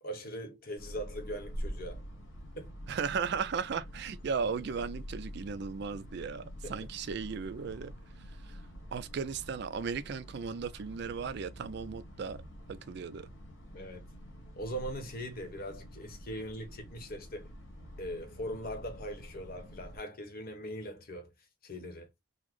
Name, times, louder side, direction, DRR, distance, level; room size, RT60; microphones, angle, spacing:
voice 1, 0.0-2.0 2.6-2.7 6.6-6.8 13.7-14.1 14.6-17.5 18.0-21.3 21.6-22.1, equal, 45° left, 0.9 m, -40 dB
sound 1, 0.8-20.0, equal, 70° left, 1.1 m, -47 dB
voice 2, 2.9-6.4 6.7-7.9 8.5-8.6 8.9-12.4 12.7-13.3, right 5 dB, 55° right, 0.4 m, -36 dB
3.9 x 2.0 x 3.0 m
head